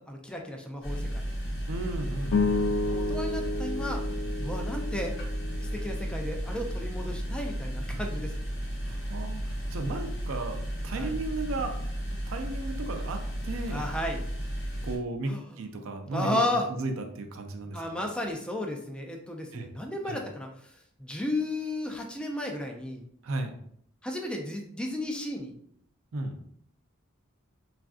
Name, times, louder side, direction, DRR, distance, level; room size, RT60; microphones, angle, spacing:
voice 1, 0.1-1.2 2.9-4.0 4.4-5.1 5.6-8.5 10.9-11.2 13.7-14.2 15.3-15.5 16.1-16.7 17.7-20.5 21.0-23.0 24.0-25.5, left 1 dB, 5° left, 2 dB, 0.3 m, -33 dB
sound 1, 0.8-15.0, equal, 60° left, 0.8 m, -34 dB
voice 2, 1.7-2.9 7.9-8.0 8.8-11.8 12.1-13.8 14.8-15.3 15.6-16.4 16.7-18.0 19.5-19.7 20.1-20.2 23.2-23.5 26.1-26.3, right 2 dB, 65° right, 5 dB, 0.4 m, -35 dB
sound 2, 2.3-6.8, left 3 dB, 80° left, 0.4 m, -31 dB
3.4 x 2.4 x 2.3 m, 0.68 s
head